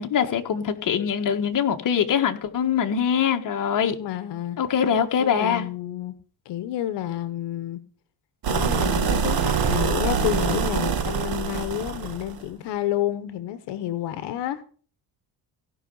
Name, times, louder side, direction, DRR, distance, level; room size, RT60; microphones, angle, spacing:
voice 1, 0.0-4.0 4.6-5.7, left 8 dB, 50° left, 1.6 m, -23 dB
voice 2, 4.0-4.6 5.2-6.1 6.4-7.8 8.5-14.6, left 12 dB, 75° left, 1.1 m, -29 dB
sound 1, 8.4-12.4, right 6 dB, 55° right, 2.3 m, -24 dB
16.5 x 5.7 x 5.5 m
cardioid pair, 110°, 42 cm